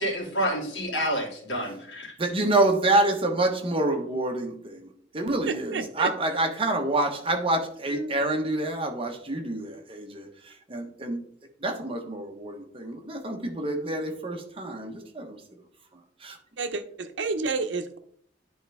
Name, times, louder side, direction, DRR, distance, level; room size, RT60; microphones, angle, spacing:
voice 1, 0.0-2.1, equal, 80° left, -2 dB, 2.7 m, -29 dB
voice 2, 2.2-4.9 5.1-10.3 10.7-11.2 11.6-15.4 16.2-16.4, right 2 dB, 30° right, 4 dB, 1.1 m, -27 dB
voice 3, 5.5-6.1 7.9-8.1 16.6-18.0, right 3 dB, 85° right, 10 dB, 0.7 m, -30 dB
10.0 x 4.4 x 3.5 m, 0.63 s
head